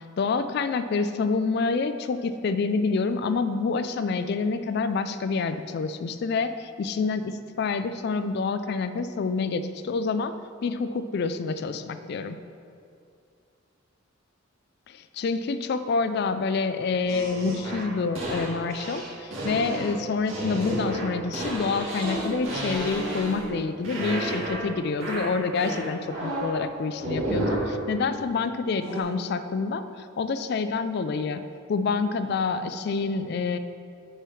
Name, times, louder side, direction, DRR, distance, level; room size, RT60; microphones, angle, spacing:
voice 1, 0.0-10.3 10.6-12.4 14.9-31.4 31.7-33.6, left 4 dB, 55° left, 11 dB, 0.3 m, -27 dB
sound 1, 17.1-23.6 23.8-24.7 25.0-26.6 27.0-27.7 28.8-29.0, right 1 dB, 80° right, 1.9 m, -31 dB
6.4 x 4.7 x 6.1 m, 2.4 s
head